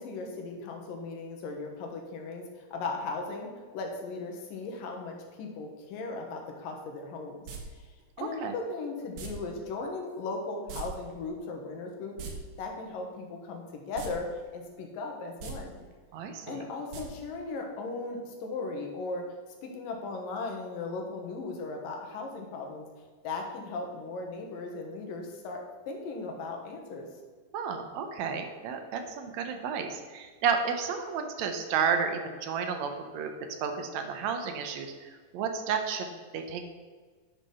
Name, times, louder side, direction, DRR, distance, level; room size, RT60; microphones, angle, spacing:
voice 1, 0.0-7.4 7.7-7.9 8.2-12.2 12.6-15.8 16.5-19.2 19.6-22.8 23.2-27.1, left 3 dB, 70° left, 2 dB, 2.8 m, -37 dB
sound 1, 7.5-7.6 9.2-9.3 10.7-10.9 11.1-11.2 12.0-12.3 13.9-14.1 14.5-14.6 15.3-15.5 16.9-17.0 17.4-17.5, right 6 dB, 60° right, 1.9 m, -39 dB
voice 2, 16.1-16.7 27.5-33.3 33.6-36.6, right 6 dB, 75° right, 6 dB, 1.6 m, -32 dB
10.5 x 6.0 x 5.5 m, 1.5 s
omnidirectional pair, 4.3 m